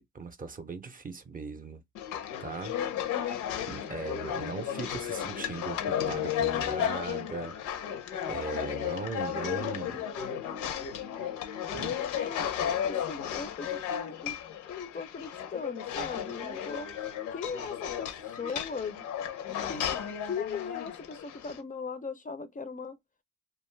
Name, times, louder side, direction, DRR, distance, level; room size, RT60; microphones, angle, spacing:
voice 1, 0.0-1.8 2.4-2.8 3.7-7.9 8.3-10.0 11.7-12.0, right 4 dB, 30° right, 0.5 m, -39 dB
sound 1, 2.0-21.6, left 9 dB, 80° left, 0.6 m, -34 dB
voice 2, 12.1-14.4 14.7-16.9 17.3-19.1 19.7-23.0, left 5 dB, 25° left, 0.4 m, -39 dB
2.4 x 2.3 x 3.1 m
cardioid pair, 90°, 30 cm